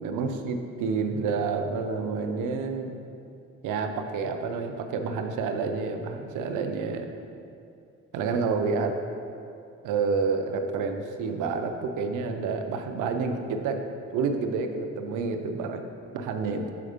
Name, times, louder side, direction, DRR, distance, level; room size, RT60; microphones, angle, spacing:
voice 1, 0.0-3.0 3.6-7.1 8.1-8.9 9.8-13.8 14.1-15.8 16.1-16.7, right 4 dB, 85° right, 6 dB, 0.6 m, -29 dB
6.9 x 4.2 x 5.0 m, 2.5 s
cardioid pair, 90°, 30 cm